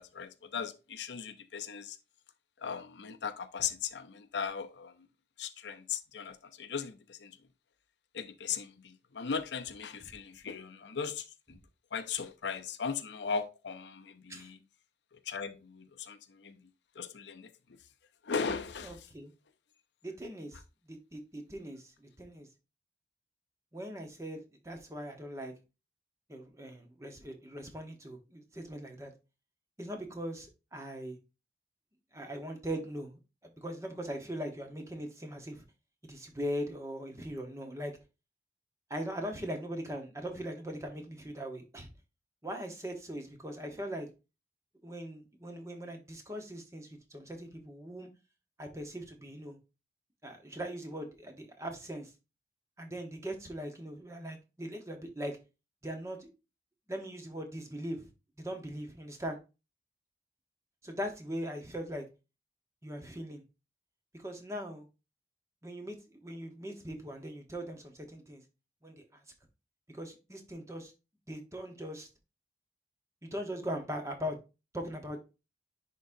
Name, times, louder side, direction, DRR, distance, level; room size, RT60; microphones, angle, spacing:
voice 1, 0.0-2.0 2.6-4.9 5.4-7.3 8.1-11.6 11.9-14.6 15.3-16.6 17.0-17.5 18.2-19.0, left 6 dB, 85° left, 0.6 m, -38 dB
voice 2, 18.8-19.3 20.0-20.6 20.9-22.5 23.7-25.5 26.3-29.1 29.8-31.2 32.1-33.2 33.6-35.6 36.0-38.0 38.9-41.9 42.4-44.1 44.8-48.1 48.6-49.6 50.2-52.1 52.8-55.4 55.8-56.3 56.9-58.1 58.4-59.4 60.8-62.0 62.8-63.4 64.1-64.9 65.6-68.4 68.8-69.2 69.9-70.9 71.3-72.1 73.2-74.4 74.7-75.2, equal, 15° right, 1.1 m, -40 dB
10.0 x 3.7 x 2.7 m
head